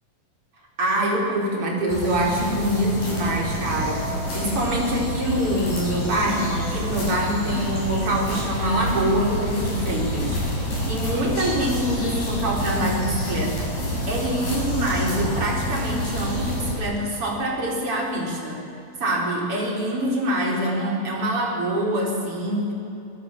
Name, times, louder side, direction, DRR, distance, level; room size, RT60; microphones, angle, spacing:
voice 1, 0.8-18.6 19.0-22.7, right 1 dB, 35° right, -1 dB, 5.2 m, -25 dB
sound 1, 1.9-16.7, equal, 65° left, 8.9 m, -28 dB
28.0 x 17.5 x 7.5 m, 2.8 s
omnidirectional pair, 4.3 m